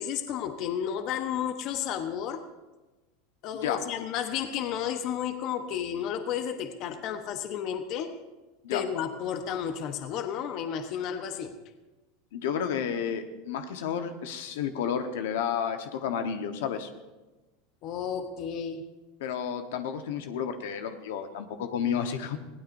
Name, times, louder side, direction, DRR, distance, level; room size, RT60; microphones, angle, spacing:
voice 1, 0.0-2.5 3.4-8.2 8.7-11.6 17.8-18.8, left 8 dB, 50° left, 8 dB, 1.1 m, -32 dB
voice 2, 12.3-16.9 19.2-22.4, left 8 dB, 80° left, 7 dB, 1.2 m, -31 dB
21.0 x 16.0 x 2.7 m, 1.1 s
supercardioid pair, 120°, 0 cm